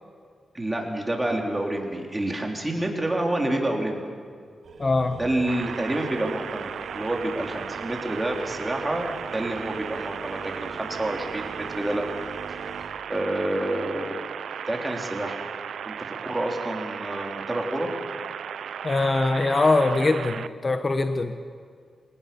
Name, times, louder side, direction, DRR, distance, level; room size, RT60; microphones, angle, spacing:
voice 1, 0.5-4.0 5.2-12.0 12.5-12.7 13.1-14.2 14.7-15.4 15.9-16.0 16.2-17.9, right 1 dB, 15° right, 1 dB, 3.8 m, -28 dB
sound 1, 4.6-12.9, right 4 dB, 65° right, 3.3 m, -42 dB
voice 2, 4.8-5.2 18.8-21.4, left 3 dB, 35° left, 8 dB, 1.1 m, -22 dB
sound 2, 5.5-20.5, right 8 dB, 80° right, 0.5 m, -36 dB
23.5 x 18.5 x 7.1 m, 2.1 s
cardioid pair, 85°, 0 cm